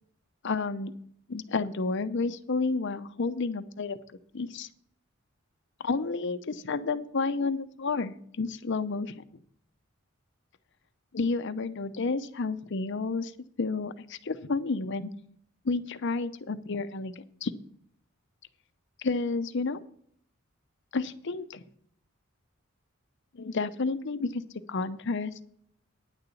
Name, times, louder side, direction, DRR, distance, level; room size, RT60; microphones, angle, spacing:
voice 1, 0.4-0.9 1.3-4.0 4.3-4.7 5.8-9.1 11.1-13.3 13.6-15.1 15.6-17.1 17.4-17.5 19.0-19.8 20.9-21.6 23.3-24.4 24.7-25.4, left 4 dB, 60° left, 12 dB, 0.7 m, -30 dB
9.9 x 6.8 x 7.2 m, 0.65 s
head